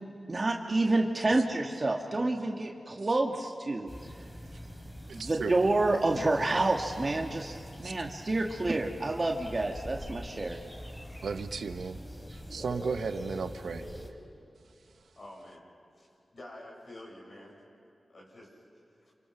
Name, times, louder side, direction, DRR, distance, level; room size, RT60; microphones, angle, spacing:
voice 1, 0.3-3.9 5.1-7.5 7.8-10.6, right 2 dB, 45° right, 1 dB, 1.9 m, -28 dB
sound 1, 3.9-14.1, equal, 20° left, 4.0 m, -44 dB
voice 2, 5.1-5.5 7.8-7.9 11.2-12.0 12.3-13.9, right 5 dB, 80° right, 9 dB, 1.0 m, -35 dB
voice 3, 15.1-15.6 16.0-16.1 16.3-17.6 18.1-18.6 19.0-19.1, left 1 dB, 60° left, -3 dB, 6.5 m, -48 dB
28.0 x 27.0 x 6.0 m, 2.7 s
cardioid pair, 40°, 0 cm